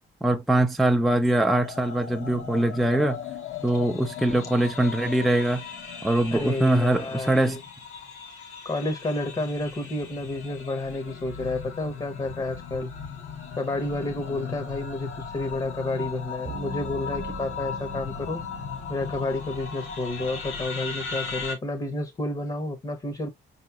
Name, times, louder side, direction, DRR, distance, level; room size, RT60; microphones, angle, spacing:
voice 1, 0.2-3.2 3.6-5.6 6.0-7.6, right 1 dB, ahead, 0.4 m, -22 dB
sound 1, 1.6-21.5, left 6 dB, 85° left, 1.3 m, -37 dB
voice 2, 6.3-7.6 8.6-12.9 13.6-18.4 18.9-23.3, left 2 dB, 25° left, 0.8 m, -30 dB
sound 2, 16.5-20.0, right 4 dB, 50° right, 0.8 m, -41 dB
5.0 x 2.9 x 2.2 m
cardioid pair, 90°, 20 cm